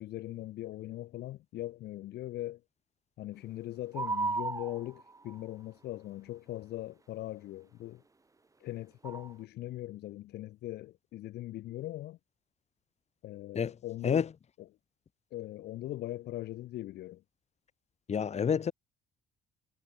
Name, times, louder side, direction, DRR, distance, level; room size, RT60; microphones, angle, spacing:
voice 1, 0.0-2.6 3.2-8.0 8.6-12.2 13.2-14.3 14.6-14.7 15.3-17.2, left 15 dB, 75° left, 6.9 m, -40 dB
sound 1, 3.9-5.3 9.0-9.3, right 3 dB, 20° right, 4.7 m, -33 dB
voice 2, 18.1-18.7, left 7 dB, 40° left, 7.9 m, -28 dB
cardioid pair, 110°, 17 cm